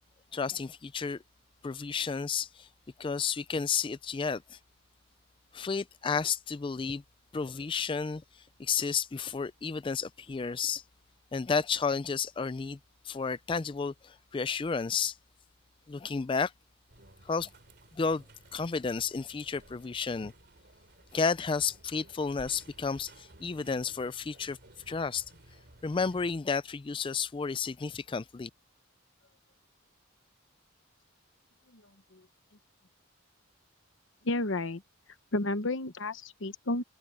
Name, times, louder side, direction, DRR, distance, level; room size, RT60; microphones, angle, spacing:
voice 1, 0.3-1.2 1.6-2.7 3.0-4.6 5.5-7.0 7.3-10.8 11.3-12.8 13.0-15.2 15.9-16.5 17.2-17.5 17.9-18.2 18.5-20.3 21.1-24.6 24.9-25.2 25.8-28.5, left 5 dB, 25° left, 0.3 m, -32 dB
sound 1, 16.9-26.3, right 1 dB, 55° right, 3.0 m, -57 dB
voice 2, 34.2-34.8 35.3-36.8, left 2 dB, 70° left, 1.1 m, -32 dB
head